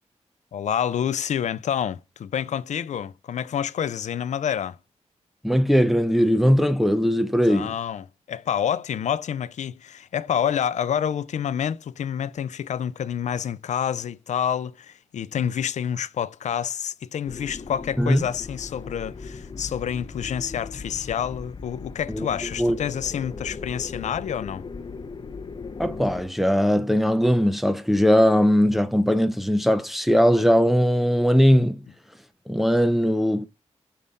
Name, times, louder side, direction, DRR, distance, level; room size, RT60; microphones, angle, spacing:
voice 1, 0.5-4.8 7.5-24.6, left 9 dB, 85° left, 0.4 m, -28 dB
voice 2, 5.4-7.7 18.0-18.2 22.1-22.3 22.6-22.8 25.8-31.8 32.5-33.5, equal, ahead, 0.5 m, -20 dB
sound 1, 17.3-26.2, left 4 dB, 40° left, 0.6 m, -38 dB
5.5 x 3.5 x 5.2 m
wide cardioid pair, 170°, 12 cm